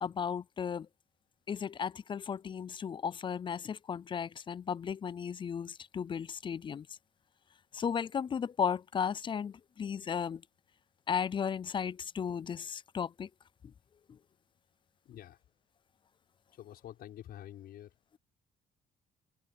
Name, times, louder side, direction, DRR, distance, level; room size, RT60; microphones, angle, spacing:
voice 1, 0.0-0.9 1.5-6.9 7.7-10.4 11.1-13.3, left 7 dB, 30° left, 0.4 m, -35 dB
voice 2, 15.0-15.4 16.5-17.9, left 12 dB, 65° left, 5.8 m, -48 dB
open air
cardioid pair, 110°, 17 cm